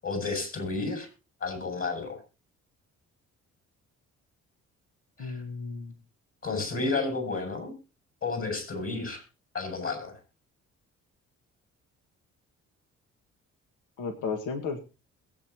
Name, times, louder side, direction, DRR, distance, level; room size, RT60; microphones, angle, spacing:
voice 1, 0.0-1.1 1.4-2.2 5.2-5.4 6.4-7.7 8.2-9.2 9.5-10.1, left 3 dB, 50° left, 5 dB, 7.9 m, -31 dB
voice 2, 5.2-5.9 14.0-14.8, left 5 dB, 85° left, 4 dB, 2.0 m, -33 dB
21.5 x 8.7 x 3.0 m, 0.31 s
cardioid pair, 90°, 30 cm